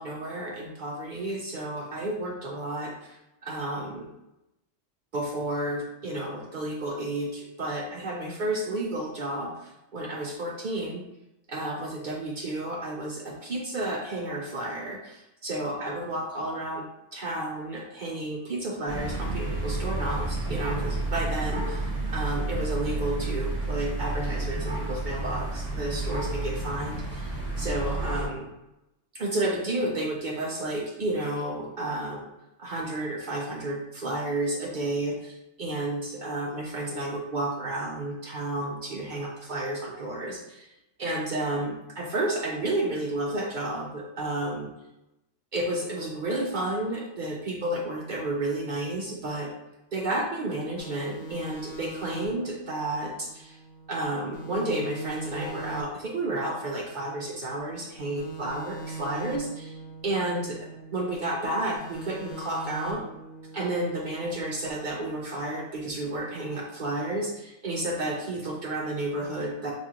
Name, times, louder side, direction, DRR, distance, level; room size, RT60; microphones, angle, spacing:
voice 1, 0.0-4.1 5.1-11.0 11.5-16.9 17.1-28.5 29.1-32.3 32.6-40.7 41.0-44.7 45.5-49.5 49.9-53.6 53.9-59.8 60.0-60.6 60.9-63.0 63.5-69.7, right 1 dB, 55° right, -1 dB, 0.5 m, -31 dB
sound 1, 18.9-28.3, right 2 dB, 10° left, 1.1 m, -30 dB
sound 2, 50.8-54.0 54.3-57.6 58.0-61.1 61.4-64.7, right 2 dB, 60° left, 0.6 m, -42 dB
5.0 x 2.8 x 2.4 m, 0.91 s
omnidirectional pair, 1.3 m